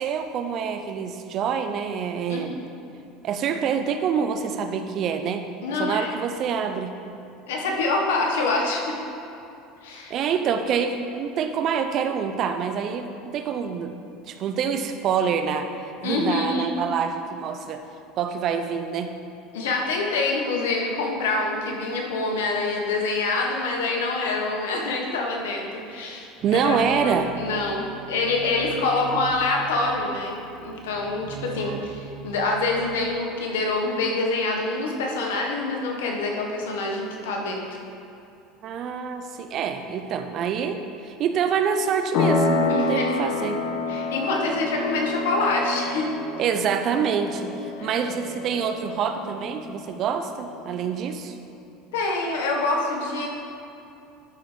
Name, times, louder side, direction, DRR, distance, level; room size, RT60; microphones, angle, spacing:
voice 1, 0.0-2.6 3.2-5.5 5.7-6.9 10.1-13.9 14.2-15.7 16.0-17.8 18.1-19.1 26.4-27.3 38.6-43.6 46.4-51.4, right 7 dB, 50° right, 7 dB, 0.7 m, -26 dB
voice 2, 2.3-2.7 5.6-6.2 7.5-9.0 9.8-10.1 16.0-16.7 19.5-37.6 42.7-43.1 43.9-46.1 47.8-47.9 51.9-53.3, left 3 dB, 90° left, 0 dB, 1.5 m, -26 dB
Keyboard (musical), 26.4-33.3, right 8 dB, 70° right, 1.1 m, -40 dB
sound 1, 42.1-50.5, left 3 dB, 60° left, 1.2 m, -28 dB
12.0 x 4.9 x 4.5 m, 2.8 s
supercardioid pair, 105°, 0 cm